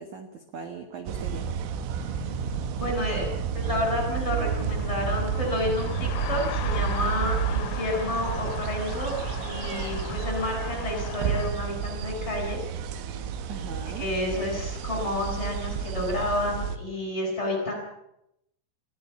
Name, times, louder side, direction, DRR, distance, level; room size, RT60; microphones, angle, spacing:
voice 1, 0.0-1.5 13.5-14.1, right 5 dB, 60° right, 7 dB, 2.2 m, -39 dB
sound 1, 1.1-16.8, right 7 dB, 85° right, 4.0 m, -31 dB
voice 2, 2.8-3.3 3.5-9.2 9.4-12.6 13.1-13.2 14.0-17.7, left 1 dB, 10° left, 3 dB, 8.0 m, -30 dB
sound 2, 4.0-11.5, left 10 dB, 75° left, 3.5 m, -39 dB
22.0 x 16.0 x 8.5 m, 0.80 s
omnidirectional pair, 5.5 m